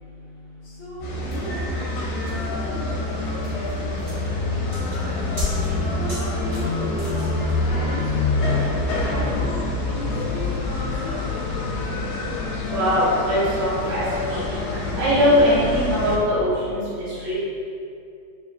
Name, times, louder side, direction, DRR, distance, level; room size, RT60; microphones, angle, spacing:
voice 1, 0.6-5.2 5.6-8.1 9.0-11.9, left 1 dB, 75° left, -9 dB, 1.6 m, -37 dB
sound 1, 1.0-16.2, left 3 dB, 90° left, 2.4 m, -26 dB
sound 2, 1.0-6.9, equal, 70° right, 1.4 m, -32 dB
sound 3, 1.3-7.6, right 1 dB, 50° right, 0.9 m, -41 dB
voice 2, 12.7-14.4 15.0-17.3, equal, 90° right, -13 dB, 3.2 m, -21 dB
6.8 x 2.4 x 2.3 m, 2.5 s
omnidirectional pair, 4.0 m